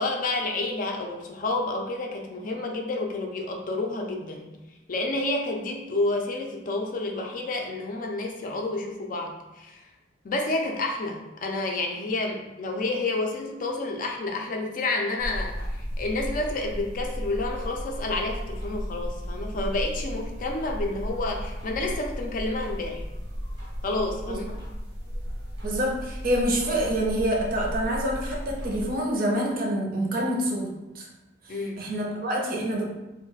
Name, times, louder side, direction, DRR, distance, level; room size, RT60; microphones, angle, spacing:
voice 1, 0.0-4.5 4.9-9.8 10.2-23.0 23.8-24.6 31.5-31.8, left 2 dB, 45° left, 2 dB, 0.4 m, -29 dB
sound 1, 15.2-28.9, equal, 85° right, 0.9 m, -34 dB
voice 2, 25.6-30.7 31.0-31.1 31.5-32.8, right 1 dB, 50° right, -1 dB, 0.5 m, -27 dB
2.2 x 2.1 x 3.9 m, 1.0 s
head